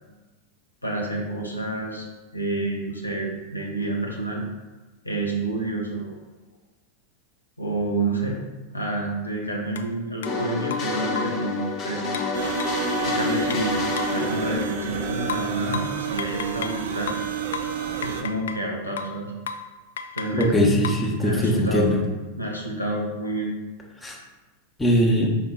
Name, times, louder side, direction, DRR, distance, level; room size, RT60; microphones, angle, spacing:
voice 1, 0.8-4.4 5.0-6.2 7.6-8.4 8.7-12.0 13.0-13.8 14.1-17.1 18.0-19.3 20.1-20.6 21.2-21.9 22.4-23.5, right 2 dB, 85° left, -1 dB, 1.0 m, -29 dB
sound 1, 9.8-9.9 10.2-10.4 10.7-11.5 12.1-14.2 15.3-16.8 17.1-18.7 19.0-19.2 19.5-19.7 20.0-21.1, left 6 dB, 60° left, 0.3 m, -34 dB
sound 2, 10.2-16.0, left 3 dB, 35° left, 1.1 m, -29 dB
sound 3, 12.3-18.2, right 9 dB, 55° right, 0.5 m, -30 dB
voice 2, 20.3-22.0 24.0-24.2 24.8-25.3, equal, 10° left, -1 dB, 1.1 m, -20 dB
5.6 x 4.3 x 3.9 m, 1.2 s
figure-of-eight pair, 90°, 0 cm